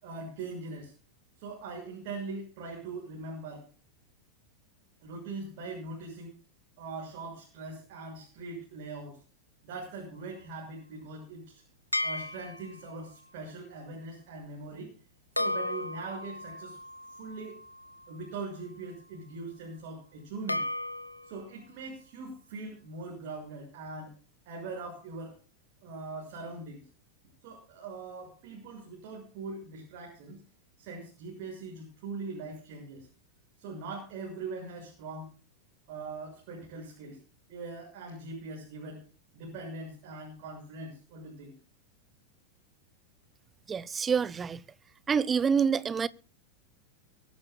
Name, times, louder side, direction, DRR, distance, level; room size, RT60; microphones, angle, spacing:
voice 1, 0.0-0.9 1.4-3.7 5.0-6.4 6.8-9.2 9.6-11.6 12.0-14.9 15.3-16.8 17.1-17.6 18.1-20.6 21.2-24.1 24.4-25.4 25.8-26.8 27.4-30.4 30.8-33.1 33.6-35.3 35.9-37.2 37.5-39.0 39.3-41.5, right 3 dB, 45° right, 6.7 m, -41 dB
sound 1, 11.9-12.9 15.4-18.5 20.5-21.4, left 1 dB, 85° left, 1.1 m, -35 dB
voice 2, 43.7-44.6 45.1-46.1, right 6 dB, 20° right, 0.8 m, -27 dB
23.5 x 14.0 x 2.4 m
figure-of-eight pair, 90°, 0 cm